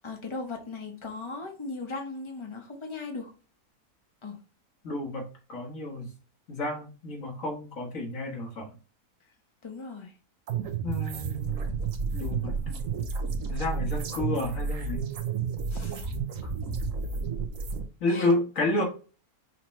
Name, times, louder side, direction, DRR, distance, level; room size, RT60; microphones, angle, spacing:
voice 1, 0.0-3.3 4.2-4.4 9.6-10.1 15.7-16.0 18.1-18.3, left 3 dB, 20° left, 1.0 m, -38 dB
voice 2, 4.8-6.1 6.5-8.7 10.8-11.8 12.1-12.6 13.5-15.1 18.0-18.8, left 2 dB, 60° left, 1.8 m, -30 dB
sound 1, 10.5-17.8, right 5 dB, 65° right, 1.1 m, -31 dB
5.9 x 2.9 x 3.1 m
omnidirectional pair, 1.6 m